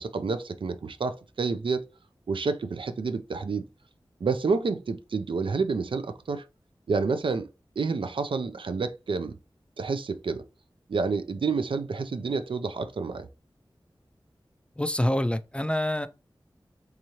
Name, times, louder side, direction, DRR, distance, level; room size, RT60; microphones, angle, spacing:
voice 1, 0.0-1.9 2.3-3.6 4.2-6.4 6.9-7.5 7.8-9.4 9.8-10.4 10.9-13.3, right 4 dB, 80° right, 0.4 m, -29 dB
voice 2, 14.8-16.1, left 1 dB, 10° left, 0.3 m, -26 dB
3.6 x 3.0 x 2.7 m
wide cardioid pair, 60°, 9 cm